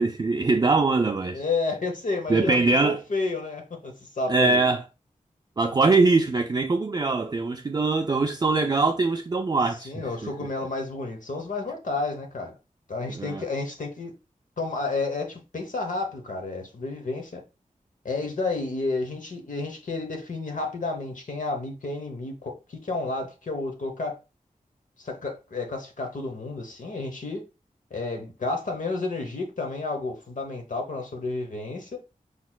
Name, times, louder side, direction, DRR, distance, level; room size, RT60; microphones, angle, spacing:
voice 1, 0.0-1.4 2.3-3.0 4.3-4.8 5.6-10.0 13.1-13.4, right 3 dB, 30° right, 0.3 m, -22 dB
voice 2, 1.3-4.6 9.8-12.6 12.9-14.1 14.6-17.4 18.0-24.2 25.0-27.4 27.9-32.0, left 3 dB, 65° left, 0.9 m, -31 dB
4.7 x 4.1 x 2.2 m
wide cardioid pair, 75°, 14 cm